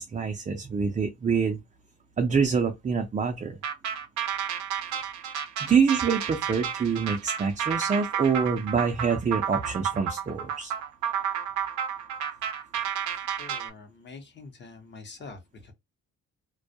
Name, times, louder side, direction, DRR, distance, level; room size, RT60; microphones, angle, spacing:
voice 1, 0.0-1.6 2.2-3.6 5.6-10.7, right 6 dB, 25° right, 0.4 m, -26 dB
sound 1, 3.6-13.7, right 8 dB, 70° right, 0.6 m, -31 dB
voice 2, 13.4-15.7, left 4 dB, 35° left, 0.8 m, -45 dB
2.2 x 2.1 x 2.6 m
cardioid pair, 90°, 30 cm